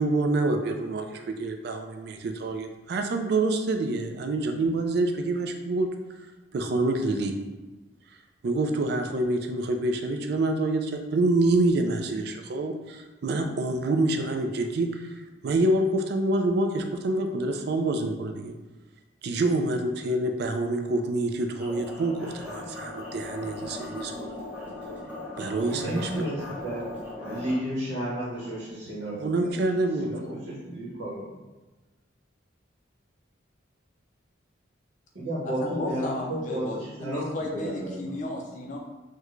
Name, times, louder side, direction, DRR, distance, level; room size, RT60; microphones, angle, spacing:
voice 1, 0.0-5.9 6.5-7.3 8.4-18.5 19.2-24.4 25.4-26.2 29.2-30.1, right 2 dB, 55° right, 5 dB, 0.3 m, -27 dB
sound 1, 21.6-27.5, left 2 dB, 5° right, 0.6 m, -38 dB
voice 2, 25.4-29.6 30.0-31.3 35.1-37.3 37.5-38.1, right 1 dB, 75° right, -8 dB, 0.9 m, -33 dB
voice 3, 35.7-38.8, left 1 dB, 40° left, -1 dB, 0.4 m, -34 dB
3.6 x 2.2 x 3.0 m, 1.2 s
head